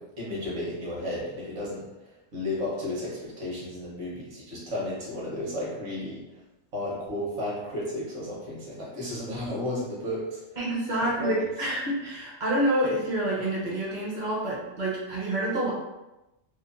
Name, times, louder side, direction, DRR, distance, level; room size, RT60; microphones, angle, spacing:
voice 1, 0.0-6.2 6.7-10.4 11.0-11.5, left 1 dB, 65° right, -5 dB, 1.2 m, -33 dB
voice 2, 10.6-15.7, right 1 dB, 45° right, -5 dB, 0.7 m, -28 dB
3.0 x 2.1 x 2.4 m, 0.98 s
omnidirectional pair, 1.4 m